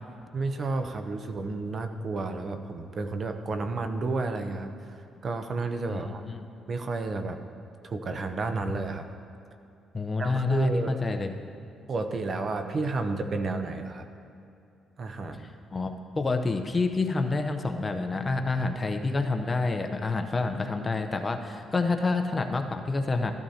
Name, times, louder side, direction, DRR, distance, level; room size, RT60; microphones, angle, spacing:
voice 1, 0.3-4.9 5.2-6.2 6.7-7.4 7.8-9.1 10.2-11.0 11.9-14.1 15.0-15.5, right 3 dB, 45° right, 8 dB, 0.7 m, -31 dB
voice 2, 5.9-6.5 9.9-11.3 15.7-23.3, left 3 dB, 25° left, 5 dB, 0.8 m, -28 dB
14.0 x 12.0 x 2.8 m, 2.6 s
cardioid pair, 90°, 0 cm